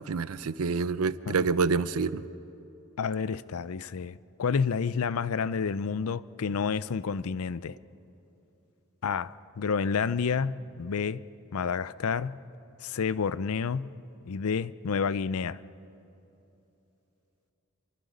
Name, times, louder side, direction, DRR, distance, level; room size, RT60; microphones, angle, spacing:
voice 1, 0.0-2.3, right 4 dB, 80° right, 0.6 m, -27 dB
voice 2, 3.0-7.8 9.0-11.2 11.5-12.4 12.8-13.9 14.3-15.6, left 6 dB, 75° left, 0.5 m, -29 dB
29.0 x 24.0 x 5.1 m
head